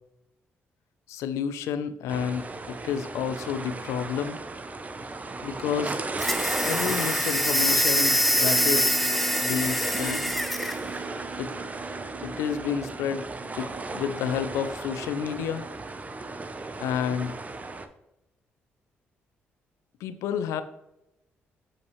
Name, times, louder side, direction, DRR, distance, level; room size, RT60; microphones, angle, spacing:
voice 1, 1.1-4.4 5.4-6.0 6.7-8.9 9.4-10.3 11.4-11.5 12.2-13.2 13.5-15.7 16.8-17.4 20.0-20.6, left 8 dB, 80° left, 11 dB, 0.5 m, -30 dB
sound 1, 2.1-17.9, right 3 dB, 30° right, 0.7 m, -35 dB
sound 2, 6.2-10.8, equal, ahead, 0.6 m, -24 dB
Bass guitar, 8.5-14.7, right 12 dB, 75° right, 0.7 m, -43 dB
7.2 x 5.1 x 3.1 m, 0.89 s
supercardioid pair, 60°, 5 cm